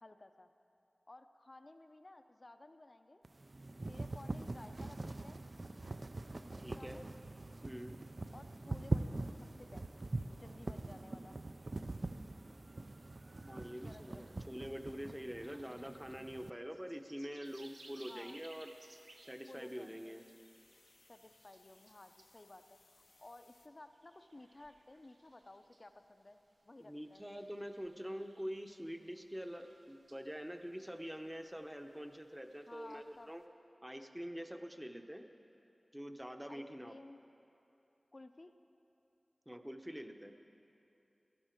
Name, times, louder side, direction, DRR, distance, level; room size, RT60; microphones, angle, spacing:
voice 1, 0.0-0.5 1.1-3.2 3.8-5.4 6.5-7.1 8.3-9.9 10.3-11.4 13.8-14.3 15.5-15.6 18.0-18.4 19.5-20.1 21.1-27.4 32.7-33.3 36.5-37.2 38.1-38.6, left 2 dB, 40° left, 8 dB, 0.6 m, -56 dB
sound 1, 3.2-16.5, right 2 dB, 45° right, 0.4 m, -43 dB
voice 2, 6.6-7.0 7.6-8.0 13.4-18.7 19.2-20.2 26.8-33.4 33.8-35.2 35.9-37.0 39.5-40.3, equal, 10° right, 6 dB, 0.8 m, -45 dB
sound 2, 13.5-33.5, right 2 dB, 75° right, 0.8 m, -65 dB
sound 3, 17.4-23.7, left 3 dB, 80° left, 0.7 m, -67 dB
16.0 x 12.0 x 4.5 m, 2.8 s
wide cardioid pair, 65°, 0 cm